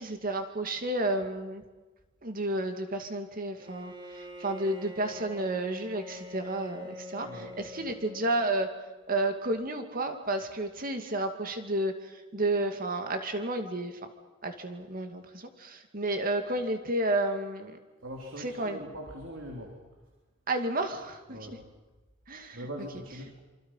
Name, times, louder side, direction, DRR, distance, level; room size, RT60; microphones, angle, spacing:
voice 1, 0.0-1.6 2.2-8.7 9.1-14.1 14.4-17.8 18.4-18.8 20.5-21.4 22.3-22.7, right 1 dB, 50° right, 6 dB, 2.4 m, -31 dB
Bowed string instrument, 3.6-9.0, left 1 dB, 25° right, 2.5 m, -45 dB
voice 2, 18.0-19.8 21.3-21.5 22.5-23.4, equal, 85° right, 0 dB, 3.6 m, -41 dB
26.5 x 25.5 x 5.7 m, 1.2 s
head